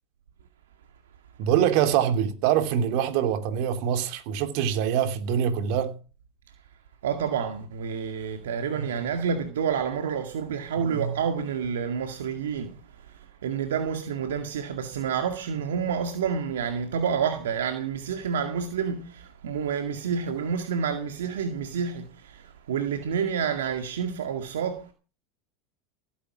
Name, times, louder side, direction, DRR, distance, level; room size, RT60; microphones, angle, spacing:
voice 1, 1.4-5.9 8.7-8.9 10.8-11.1, right 9 dB, 65° right, 3.1 m, -24 dB
voice 2, 7.0-24.9, right 7 dB, 85° right, 2.0 m, -29 dB
16.5 x 10.5 x 6.1 m
hypercardioid pair, 95°, 0 cm